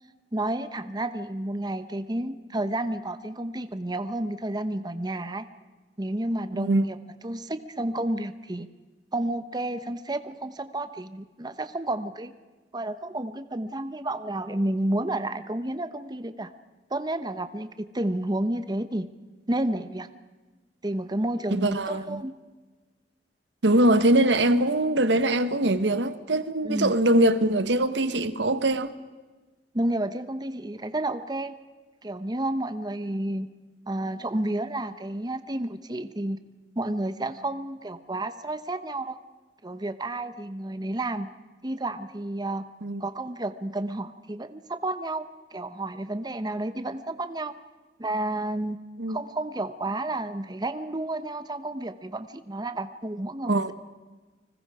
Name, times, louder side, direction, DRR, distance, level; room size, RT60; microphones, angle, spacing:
voice 1, 0.3-5.5 6.0-7.0 7.2-8.7 9.1-12.3 12.7-16.5 16.9-19.1 19.5-20.1 20.8-22.3 26.6-26.9 29.7-31.6 32.0-33.5 33.9-36.4 36.8-39.2 39.6-41.3 41.6-42.6 43.0-47.5 48.0-48.8 49.1-53.7, right 1 dB, 25° right, 0.9 m, -31 dB
voice 2, 6.5-6.9 21.5-22.2 23.6-28.9 42.8-43.0 49.0-49.2 53.5-53.7, right 1 dB, 85° right, 1.2 m, -22 dB
30.0 x 20.5 x 4.9 m
head